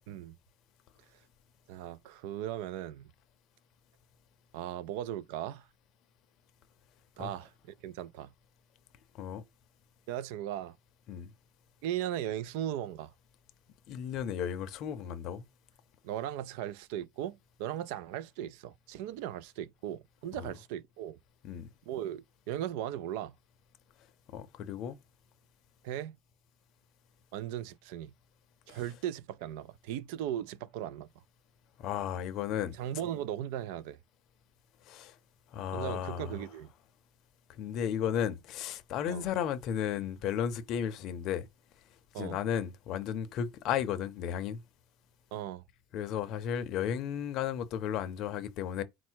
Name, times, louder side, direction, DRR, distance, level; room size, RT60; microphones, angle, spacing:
voice 1, 1.7-3.1 4.5-5.7 7.2-8.3 10.1-10.7 11.8-13.1 16.0-21.2 21.9-23.4 25.8-26.2 27.3-28.1 28.7-31.1 32.8-34.0 35.7-36.7 39.1-39.3 42.1-42.4 45.3-45.6, right 11 dB, 75° right, 0.4 m, -37 dB
voice 2, 13.9-15.5 20.4-20.5 21.4-21.7 24.3-25.0 31.8-32.7 34.9-35.1 35.5-36.4 37.6-41.5 42.2-44.6 45.9-48.8, left 9 dB, 45° left, 0.6 m, -34 dB
4.3 x 2.1 x 4.4 m
cardioid pair, 165°, 0 cm